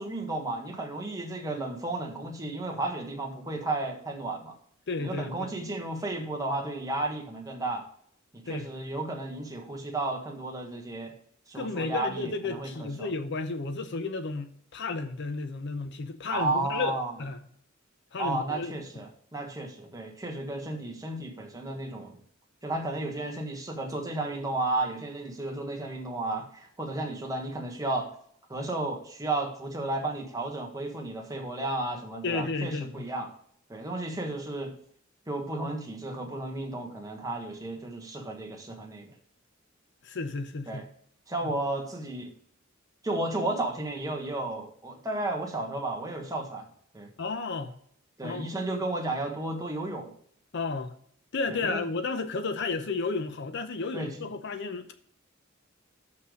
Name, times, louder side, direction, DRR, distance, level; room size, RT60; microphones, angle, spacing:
voice 1, 0.0-4.5 5.0-7.8 8.3-11.1 11.5-13.1 16.3-17.1 18.2-22.2 22.6-28.1 28.5-33.3 33.7-34.7 35.3-39.1 40.7-40.8 41.3-42.3 43.0-46.6 46.9-47.1 48.2-50.1 51.5-51.8 53.9-54.2, right 2 dB, 20° right, 1.4 m, -33 dB
voice 2, 4.9-5.5 8.5-8.7 11.5-17.4 18.1-18.7 32.2-33.1 40.0-40.9 41.4-41.5 47.2-47.7 48.2-48.5 50.5-50.9 51.3-54.9, left 3 dB, 60° left, 0.7 m, -32 dB
6.7 x 5.6 x 6.3 m
head